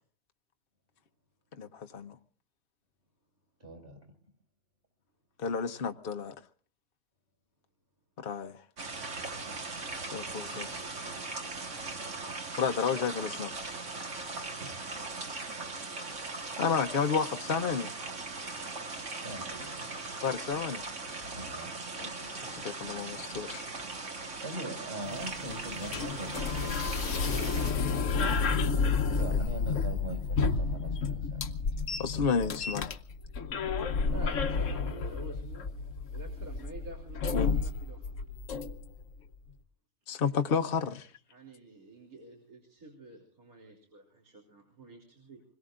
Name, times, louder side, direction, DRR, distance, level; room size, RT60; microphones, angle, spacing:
voice 1, 1.6-2.2 5.4-6.3 8.2-8.6 10.1-10.7 12.6-13.7 16.6-17.9 20.2-20.8 22.0-23.6 30.1-30.2 32.0-32.9 37.3-37.5 40.1-41.1, left 6 dB, 45° left, 0.9 m, -31 dB
voice 2, 3.6-4.1 19.1-19.9 21.3-21.7 24.4-27.3 29.1-31.5, right 1 dB, 35° right, 6.4 m, -42 dB
sound 1, 8.8-27.7, right 3 dB, 55° right, 2.3 m, -39 dB
sound 2, 25.0-39.0, left 4 dB, 60° left, 1.2 m, -31 dB
voice 3, 32.3-32.8 34.1-35.7 36.1-38.1 41.3-45.4, right 2 dB, 70° right, 3.5 m, -49 dB
26.0 x 21.5 x 2.5 m
omnidirectional pair, 1.6 m